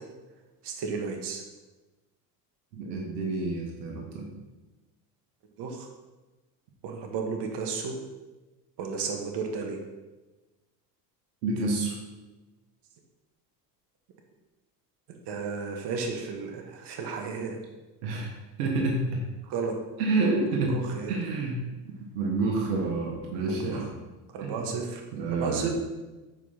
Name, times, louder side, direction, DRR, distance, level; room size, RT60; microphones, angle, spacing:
voice 1, 0.6-1.4 5.6-5.9 6.8-8.0 8.8-9.8 15.1-17.6 19.4-19.7 20.7-21.1 23.5-23.9 24.3-25.0 25.3-25.7, right 5 dB, 60° right, 2 dB, 1.8 m, -33 dB
voice 2, 2.7-4.3 11.4-11.9 18.0-18.3 18.6-19.2 20.0-20.8 21.1-23.9 24.4-24.7 25.1-25.7, right 3 dB, 90° right, 0 dB, 1.6 m, -29 dB
7.3 x 5.2 x 5.7 m, 1.1 s
supercardioid pair, 80°, 47 cm